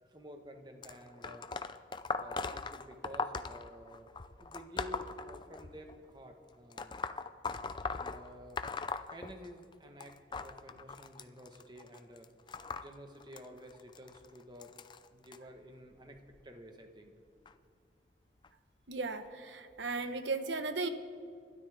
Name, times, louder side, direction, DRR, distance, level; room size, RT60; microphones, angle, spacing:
voice 1, 0.1-1.5 2.2-4.1 4.4-6.9 7.8-8.6 9.1-14.7 15.1-17.1, equal, 25° right, 5 dB, 1.3 m, -51 dB
sound 1, 0.8-6.0 6.7-9.7 10.0-15.4 16.2-16.4 17.5-17.6 18.4-18.5 19.2-19.3, left 4 dB, 25° left, 0.4 m, -40 dB
voice 2, 18.9-20.9, right 3 dB, 85° right, 9 dB, 1.1 m, -36 dB
27.5 x 12.5 x 3.5 m, 2.4 s
head